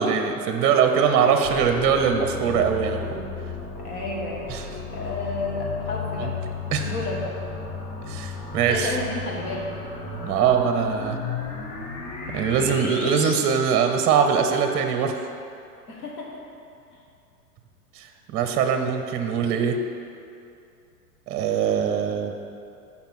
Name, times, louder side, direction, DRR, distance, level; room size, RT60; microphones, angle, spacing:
voice 1, 0.0-3.2 4.5-4.6 6.2-6.3 6.7-6.9 8.0-9.0 10.2-11.2 12.3-15.1 18.0-19.8 21.3-22.3, right 7 dB, 30° right, 5 dB, 0.7 m, -22 dB
sound 1, 1.4-13.4, left 5 dB, 35° left, 1.2 m, -34 dB
voice 2, 3.8-4.5 4.9-6.4 6.8-7.3 8.7-9.7 12.7-12.8 15.9-16.4, left 2 dB, 65° left, -2 dB, 2.0 m, -31 dB
7.0 x 5.7 x 6.1 m, 2.5 s
hypercardioid pair, 105°, 47 cm